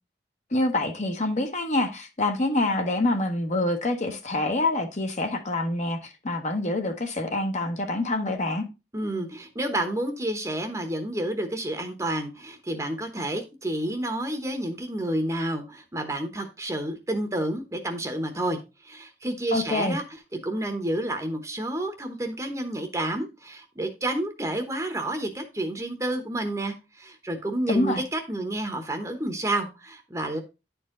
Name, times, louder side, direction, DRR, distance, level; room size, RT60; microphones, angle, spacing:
voice 1, 0.5-8.7 19.5-20.0 27.7-28.0, left 2 dB, 45° left, 1.2 m, -26 dB
voice 2, 8.9-18.6 18.8-20.0 20.4-30.4, right 1 dB, 20° right, 1.0 m, -30 dB
10.5 x 4.5 x 3.7 m
head